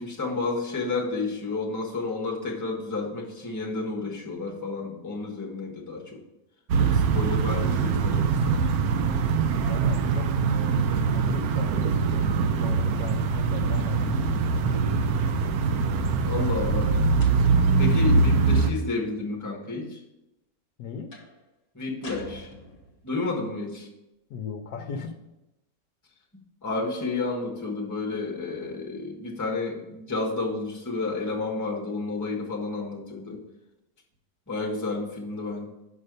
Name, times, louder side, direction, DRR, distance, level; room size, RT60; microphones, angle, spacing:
voice 1, 0.0-6.2 6.8-8.6 16.3-16.9 17.8-20.0 21.7-22.5 23.0-23.9 26.6-33.4 34.5-35.7, left 3 dB, 10° left, -2 dB, 1.2 m, -31 dB
sound 1, 6.7-18.7, right 5 dB, 70° right, 1.0 m, -23 dB
voice 2, 9.7-10.5 11.1-15.5 20.8-21.1 24.3-25.2, left 6 dB, 65° left, 6 dB, 1.0 m, -37 dB
sound 2, 17.2-17.8 21.1-21.4 22.0-23.1, left 1 dB, 40° left, 1.2 m, -44 dB
5.5 x 5.4 x 6.6 m, 0.95 s
omnidirectional pair, 1.9 m